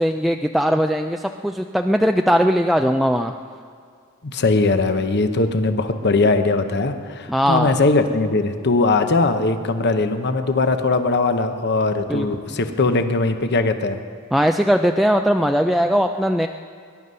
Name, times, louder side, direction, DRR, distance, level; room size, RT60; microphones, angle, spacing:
voice 1, 0.0-3.3 7.3-7.7 12.1-12.6 14.3-16.5, equal, ahead, 4 dB, 0.3 m, -19 dB
voice 2, 4.2-14.0, left 3 dB, 50° left, 8 dB, 0.9 m, -20 dB
21.0 x 11.0 x 5.5 m, 2.2 s
head